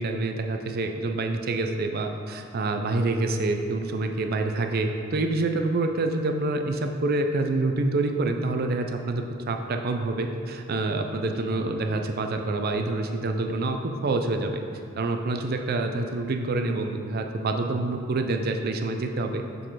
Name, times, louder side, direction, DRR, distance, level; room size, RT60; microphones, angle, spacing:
voice 1, 0.0-13.8 14.0-14.6 15.0-19.4, right 2 dB, 50° right, 5 dB, 0.4 m, -27 dB
6.8 x 3.8 x 4.8 m, 2.5 s
head